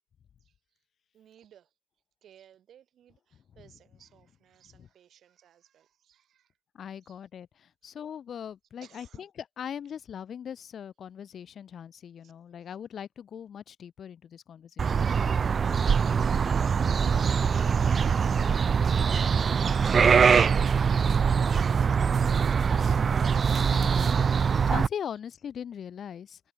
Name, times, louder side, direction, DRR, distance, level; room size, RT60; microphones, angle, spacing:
voice 1, 1.1-1.7 2.2-6.6 7.0-7.3 7.8-7.9 8.8-9.3 12.2-12.7 24.0-24.3, right 10 dB, 65° right, 6.6 m, -59 dB
voice 2, 6.7-9.3 9.6-15.1 23.7-26.4, left 8 dB, 60° left, 1.5 m, -40 dB
sound 1, 14.8-24.9, right 6 dB, 45° right, 0.3 m, -23 dB
cardioid pair, 90°, 0 cm